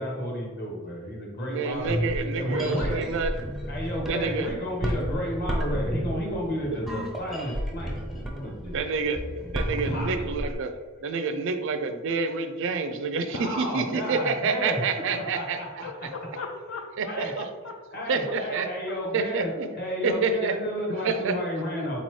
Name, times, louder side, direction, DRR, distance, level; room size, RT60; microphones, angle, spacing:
voice 1, 0.0-3.0 3.7-8.7 9.0-9.1 9.9-10.3 13.3-14.8 15.1-15.7 17.1-17.3 17.9-22.0, equal, 45° left, -2 dB, 1.2 m, -32 dB
voice 2, 1.5-3.4 4.1-4.5 8.7-9.2 9.5-10.7 11.0-15.6 17.0-17.5 18.1-18.7 19.1-19.7 20.0-20.5 21.0-21.3, right 4 dB, 60° right, 8 dB, 0.4 m, -28 dB
sound 1, 1.7-10.5, equal, ahead, 0.5 m, -32 dB
voice 3, 15.8-18.1 18.5-18.9, left 4 dB, 65° left, 4 dB, 0.5 m, -40 dB
4.1 x 3.8 x 3.1 m, 1.4 s
head